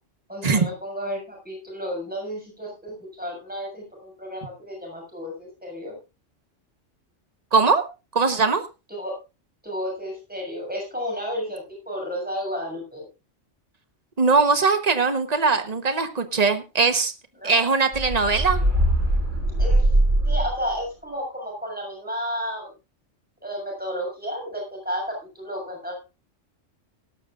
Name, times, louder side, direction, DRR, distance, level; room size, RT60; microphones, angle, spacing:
voice 1, 0.3-6.0 8.9-9.1 9.6-13.1 17.4-17.6 19.6-19.9 20.2-22.7 23.4-25.9, equal, 5° right, 0 dB, 6.9 m, -32 dB
voice 2, 7.5-7.8 8.1-8.6 14.2-17.1 17.4-18.6, right 4 dB, 35° right, 9 dB, 1.3 m, -20 dB
sound 1, 17.9-20.7, right 1 dB, 85° right, 3.7 m, -21 dB
17.5 x 12.5 x 2.5 m, 0.28 s
omnidirectional pair, 1.3 m